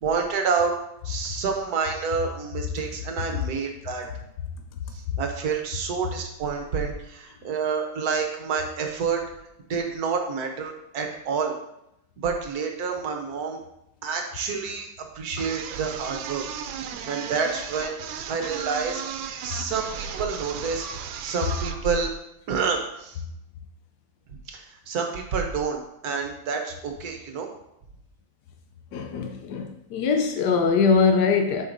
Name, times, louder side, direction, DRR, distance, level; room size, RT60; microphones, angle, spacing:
voice 1, 0.0-0.7 1.0-4.1 4.9-9.2 9.7-11.5 12.2-13.6 14.0-14.9 15.1-16.4 17.1-18.0 18.3-19.0 19.4-20.9 21.2-22.1 22.5-23.2 24.5-27.5, right 5 dB, 60° right, 3 dB, 1.2 m, -28 dB
sound 1, 15.4-21.8, right 7 dB, 85° right, 1.3 m, -36 dB
voice 2, 28.9-31.6, left 5 dB, 70° left, 4 dB, 1.0 m, -22 dB
7.4 x 5.2 x 2.6 m, 0.81 s
omnidirectional pair, 2.1 m